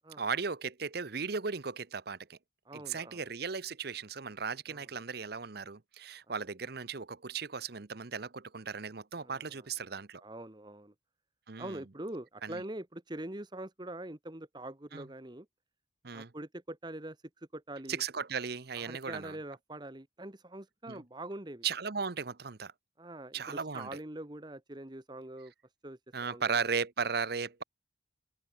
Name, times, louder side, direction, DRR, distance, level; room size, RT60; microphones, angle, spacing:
voice 1, 0.2-2.4 2.7-10.2 11.5-11.8 12.4-12.6 14.9-15.0 16.0-16.3 17.9-19.4 20.9-21.0 21.6-22.7 23.3-23.9 26.1-27.6, right 5 dB, 55° right, 0.9 m, -36 dB
voice 2, 2.6-3.2 4.7-4.9 9.2-9.7 10.2-10.9 11.6-15.5 16.1-18.0 18.8-21.7 23.0-25.5 25.8-26.7, right 1 dB, 20° right, 1.2 m, -44 dB
head